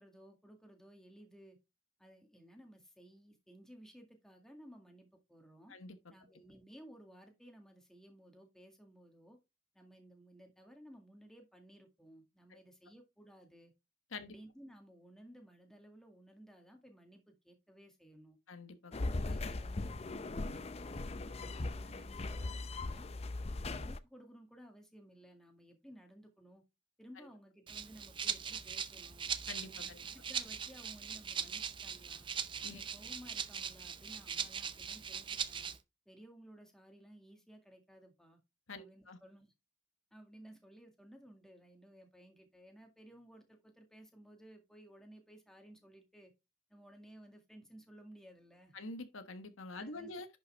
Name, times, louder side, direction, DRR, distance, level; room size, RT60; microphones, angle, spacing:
voice 1, 0.0-1.6 2.0-5.7 6.1-9.4 9.7-13.7 14.1-18.4 19.1-23.1 23.6-26.6 27.0-29.3 29.7-32.3 32.7-35.7 36.1-38.4 38.7-39.5 40.1-46.3 46.7-48.7 49.8-50.1, right 1 dB, 5° left, 1.9 m, -57 dB
voice 2, 18.5-19.2 29.5-30.0 32.6-32.8 38.7-39.2 48.7-50.3, left 3 dB, 90° left, 1.2 m, -46 dB
sound 1, 18.9-24.0, left 2 dB, 30° left, 0.5 m, -39 dB
Rattle (instrument), 27.7-35.8, right 7 dB, 25° right, 0.5 m, -40 dB
10.5 x 5.5 x 3.4 m
head